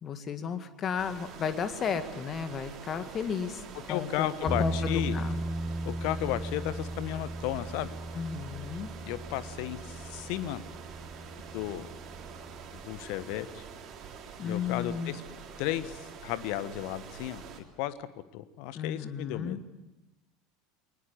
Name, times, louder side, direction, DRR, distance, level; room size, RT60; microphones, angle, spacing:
voice 1, 0.0-3.6 3.9-5.4 8.1-8.9 14.4-15.1 18.7-19.6, left 6 dB, 35° left, 10 dB, 1.9 m, -34 dB
sound 1, 1.0-17.6, right 7 dB, 40° right, 3.4 m, -46 dB
voice 2, 3.9-5.2 5.8-7.9 9.0-10.6 11.5-11.9 12.7-13.6 14.4-15.2 15.6-17.4 17.8-18.1 18.3-19.6, left 14 dB, 55° left, 15 dB, 1.3 m, -34 dB
sound 2, 4.5-13.4, right 1 dB, 10° left, 1.5 m, -37 dB
22.5 x 20.0 x 8.2 m, 1.0 s
figure-of-eight pair, 75°, 0 cm